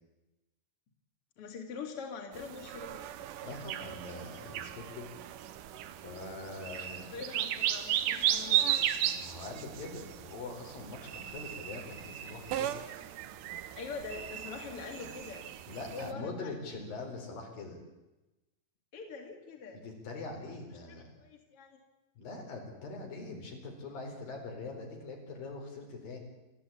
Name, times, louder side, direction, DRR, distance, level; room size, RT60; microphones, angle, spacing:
voice 1, 1.4-3.1 7.1-8.7 13.8-15.5 15.8-16.5 18.9-19.8 21.2-21.8, left 5 dB, 45° left, 3 dB, 3.2 m, -43 dB
sound 1, 2.3-16.1, right 11 dB, 75° right, 2.4 m, -36 dB
voice 2, 3.4-5.1 6.0-7.3 9.2-12.9 15.7-17.8 19.7-21.1 22.2-26.2, left 3 dB, 80° left, 1 dB, 6.1 m, -43 dB
sound 2, 6.6-7.1 8.7-9.3 11.1-12.8 14.1-15.5, right 7 dB, 50° right, 2.3 m, -46 dB
28.0 x 13.5 x 8.6 m, 1.0 s
omnidirectional pair, 4.0 m